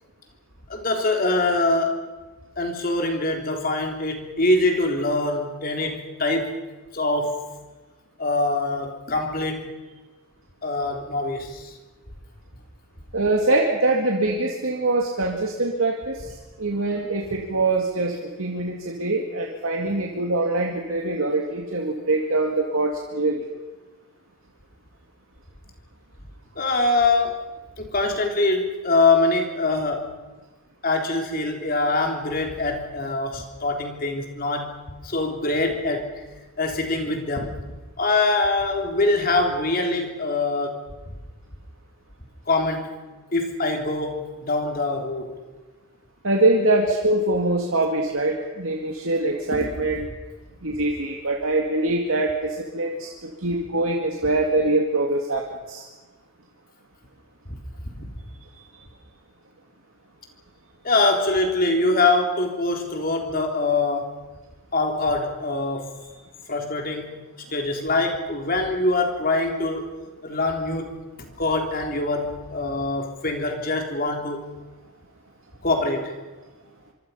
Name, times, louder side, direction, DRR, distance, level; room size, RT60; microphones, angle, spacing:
voice 1, 0.7-2.0 2.6-6.5 6.9-7.4 8.2-9.6 10.6-11.7 26.6-27.3 27.8-30.1 30.8-34.7 35.0-36.1 36.6-37.5 38.0-40.8 42.5-42.9 43.3-45.3 49.5-49.7 57.4-57.6 58.0-58.1 60.8-64.1 64.7-66.0 66.5-67.2 67.5-69.9 70.2-74.4 75.6-76.1, left 2 dB, 40° left, 4 dB, 3.5 m, -24 dB
voice 2, 13.1-16.2 16.6-23.4 46.2-50.0 50.6-55.8, right 2 dB, 75° right, 1 dB, 2.3 m, -23 dB
25.5 x 24.5 x 5.7 m, 1.2 s
head